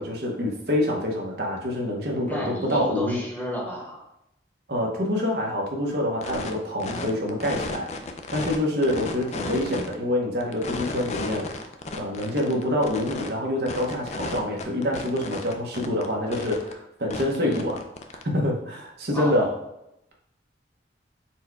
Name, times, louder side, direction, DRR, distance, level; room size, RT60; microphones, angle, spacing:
voice 1, 0.0-3.2 4.7-7.9 8.3-11.5 11.9-17.8 18.2-19.5, left 1 dB, 60° right, -1 dB, 0.9 m, -26 dB
voice 2, 2.3-4.0 17.4-17.7 19.1-19.5, equal, 10° left, -3 dB, 0.9 m, -32 dB
sound 1, 6.2-6.5 6.8-8.6 8.8-9.9 10.4-13.3 13.7-16.1 16.3-16.7 17.1-18.2, left 3 dB, 35° left, 0.4 m, -34 dB
4.4 x 2.2 x 4.5 m, 0.82 s
head